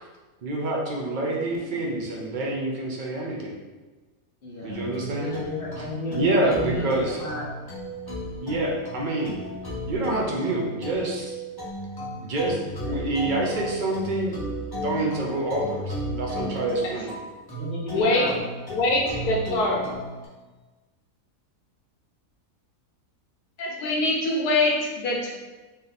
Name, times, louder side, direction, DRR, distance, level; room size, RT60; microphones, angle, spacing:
voice 1, 0.4-3.6 4.6-5.4 6.1-7.2 8.4-9.4 9.9-11.3 12.2-17.2, right 2 dB, 80° right, -2 dB, 0.4 m, -27 dB
voice 2, 1.2-1.9 4.4-7.4 16.9-17.1 17.5-18.4 18.7-19.4, left 2 dB, 40° left, -10 dB, 1.1 m, -35 dB
sound 1, 4.7-20.3, equal, 25° left, 0.5 m, -35 dB
voice 3, 17.9-18.3 18.7-19.9 23.6-25.3, left 2 dB, 85° left, -1 dB, 1.3 m, -23 dB
3.2 x 2.8 x 3.9 m, 1.2 s
omnidirectional pair, 1.6 m